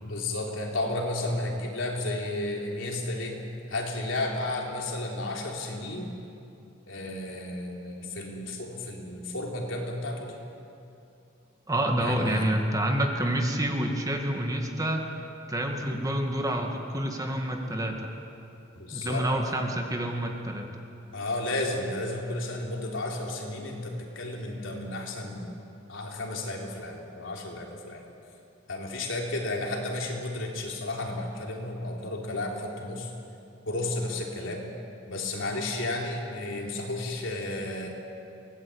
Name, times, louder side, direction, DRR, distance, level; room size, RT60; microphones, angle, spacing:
voice 1, 0.0-3.4 3.7-6.2 6.9-10.4 12.0-12.5 18.8-19.3 21.1-25.5 25.9-28.0 28.7-33.1 33.7-34.7 35.1-37.9, left 2 dB, 75° left, 0 dB, 3.7 m, -33 dB
voice 2, 11.7-15.1 15.5-18.1 18.9-20.7, right 1 dB, 20° right, 2 dB, 2.0 m, -28 dB
23.0 x 18.5 x 8.7 m, 2.7 s
head